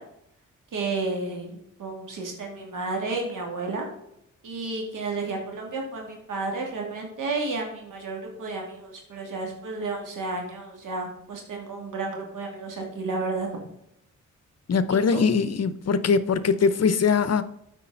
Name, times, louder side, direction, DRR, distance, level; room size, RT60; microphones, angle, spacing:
voice 1, 0.7-3.9 4.4-13.5 15.1-15.2, right 3 dB, 85° right, 2.5 m, -32 dB
voice 2, 14.7-17.4, left 5 dB, 55° left, 0.8 m, -22 dB
8.4 x 5.0 x 5.5 m
cardioid pair, 70°, 31 cm